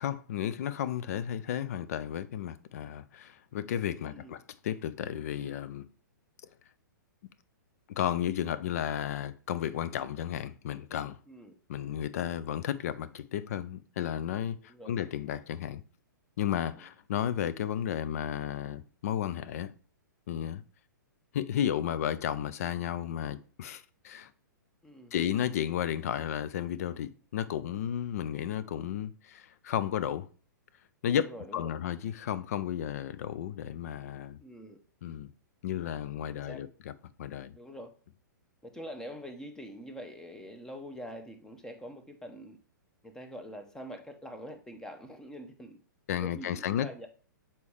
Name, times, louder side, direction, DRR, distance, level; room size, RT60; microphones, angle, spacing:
voice 1, 0.0-5.9 8.0-11.2 11.7-15.8 16.4-19.7 20.3-20.6 21.3-24.3 25.1-30.3 31.0-34.4 35.0-35.3 35.6-36.9 37.2-37.6 46.1-46.9, left 10 dB, 50° left, 0.4 m, -33 dB
voice 2, 4.0-4.3 11.3-11.5 14.7-14.9 16.6-16.8 24.8-25.1 31.1-31.6 34.4-34.8 36.3-36.6 37.5-37.9 38.7-42.6 43.0-45.8 46.2-47.1, equal, 5° left, 0.7 m, -45 dB
6.8 x 4.3 x 3.2 m
figure-of-eight pair, 115°, 11 cm